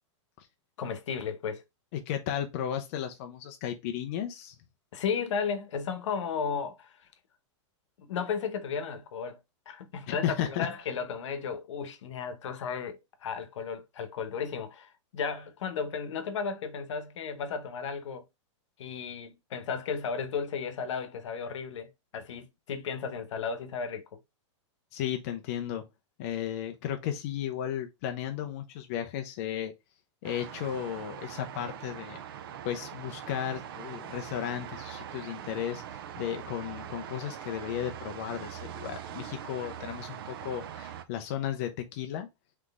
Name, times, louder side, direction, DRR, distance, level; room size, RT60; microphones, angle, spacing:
voice 1, 0.8-1.6 4.9-7.1 8.0-9.4 9.7-18.3 18.8-24.2, left 6 dB, 70° left, 0.9 m, -34 dB
voice 2, 1.9-4.5 10.1-10.7 24.9-25.8 26.2-29.7 30.2-32.2 32.6-42.3, left 10 dB, 30° left, 0.4 m, -34 dB
sound 1, 30.2-41.0, right 9 dB, 50° right, 0.5 m, -42 dB
3.9 x 3.2 x 3.4 m
supercardioid pair, 175°, 16 cm